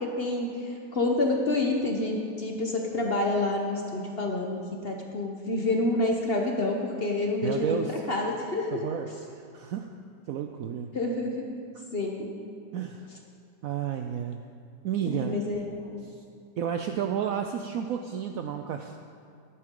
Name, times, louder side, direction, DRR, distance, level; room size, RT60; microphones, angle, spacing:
voice 1, 0.0-8.8 10.9-11.4 11.9-12.3 15.0-16.1, left 2 dB, 45° left, 1 dB, 0.9 m, -28 dB
voice 2, 7.4-8.0 8.7-9.9 10.3-10.9 11.7-11.8 12.7-13.1 13.6-14.5 14.8-15.4 16.0-16.2 16.6-19.0, right 8 dB, 70° right, 5 dB, 0.8 m, -32 dB
13.0 x 11.5 x 3.8 m, 2.4 s
omnidirectional pair, 1.9 m